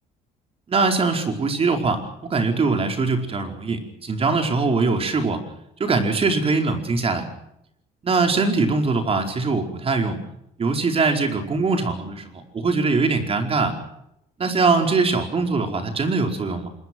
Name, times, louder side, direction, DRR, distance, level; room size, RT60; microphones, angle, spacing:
voice 1, 0.7-5.4 5.8-7.2 8.0-10.2 10.6-13.7 14.4-16.7, right 4 dB, 35° right, 4 dB, 4.8 m, -22 dB
26.0 x 22.5 x 6.3 m, 0.80 s
cardioid pair, 110°, 17 cm